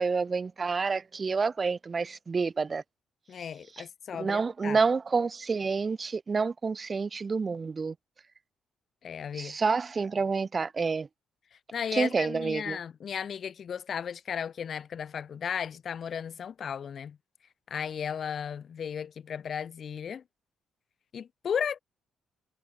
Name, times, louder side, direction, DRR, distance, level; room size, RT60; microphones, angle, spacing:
voice 1, 0.0-2.8 4.2-7.9 9.3-11.1 11.9-12.8, right 4 dB, 35° right, 0.5 m, -28 dB
voice 2, 3.3-4.8 9.0-9.6 11.7-17.2 17.7-20.2 21.1-21.8, left 7 dB, 55° left, 0.9 m, -35 dB
cardioid pair, 90°, 0 cm